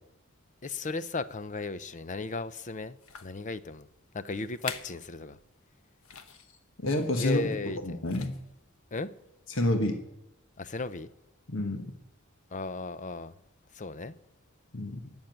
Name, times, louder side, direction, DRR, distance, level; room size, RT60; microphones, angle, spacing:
voice 1, 0.6-3.9 4.1-5.4 7.2-8.0 8.9-9.1 10.6-11.1 12.5-13.3 13.7-14.1, left 3 dB, 35° left, 0.7 m, -36 dB
sound 1, 2.3-2.4 3.0-3.4 4.1-4.2 4.5-5.0 5.3-5.5 6.0-6.4 7.5-7.7 8.0-8.6 9.3-9.4, left 6 dB, 90° left, 1.3 m, -43 dB
voice 2, 6.8-8.4 9.5-10.0 11.5-11.9 14.7-15.1, left 1 dB, 65° left, 1.4 m, -29 dB
18.5 x 7.2 x 9.0 m
head